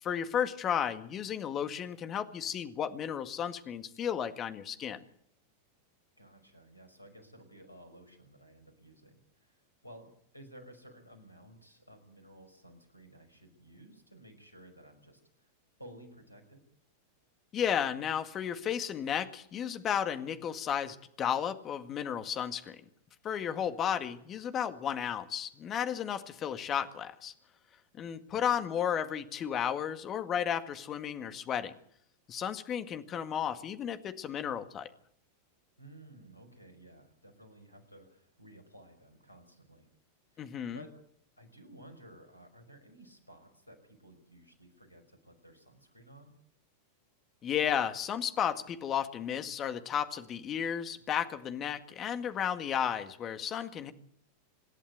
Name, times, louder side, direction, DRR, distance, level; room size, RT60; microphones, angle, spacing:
voice 1, 0.0-5.0 17.5-22.8 23.2-27.3 28.0-31.7 32.3-34.9 40.4-40.8 47.4-53.9, left 8 dB, 30° left, 10 dB, 1.8 m, -33 dB
voice 2, 6.2-15.5 15.8-16.6 28.3-28.6 35.8-39.9 40.3-41.0 41.4-46.3, right 1 dB, 85° left, 7 dB, 5.7 m, -55 dB
26.5 x 11.5 x 9.4 m, 0.66 s
figure-of-eight pair, 90°, 0 cm